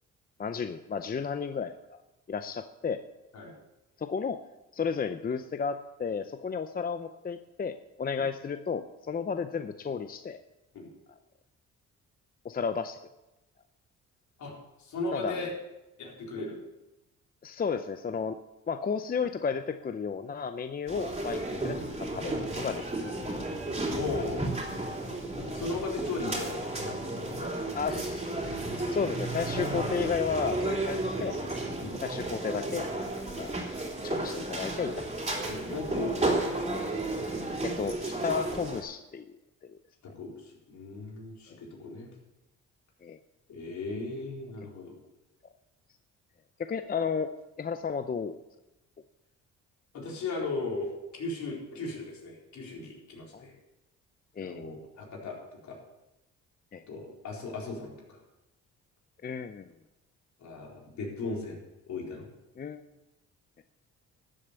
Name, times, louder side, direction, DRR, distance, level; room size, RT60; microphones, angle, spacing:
voice 1, 0.4-2.0 2.3-3.0 4.0-4.4 4.7-10.4 12.4-13.0 15.1-15.5 17.4-18.4 18.7-22.8 27.7-28.3 28.9-31.4 32.0-32.9 33.4-33.6 34.0-35.1 37.6-39.3 39.6-39.8 43.0-43.2 46.6-47.3 47.6-48.4 53.3-53.4 54.4-54.7 56.7-56.8 59.2-59.7 62.6-62.8, left 6 dB, 30° left, 9 dB, 0.6 m, -33 dB
voice 2, 14.8-15.5 16.0-16.6 23.9-24.5 25.4-27.7 31.8-32.0 35.4-36.8 40.0-42.1 43.5-45.0 49.9-53.6 54.4-55.4 55.6-55.8 56.9-58.2 60.4-61.6 61.9-62.3, left 3 dB, 70° left, -2 dB, 4.2 m, -37 dB
sound 1, 20.9-38.8, right 2 dB, 20° right, 3.4 m, -33 dB
13.0 x 7.5 x 6.9 m, 0.97 s
cardioid pair, 90°, 30 cm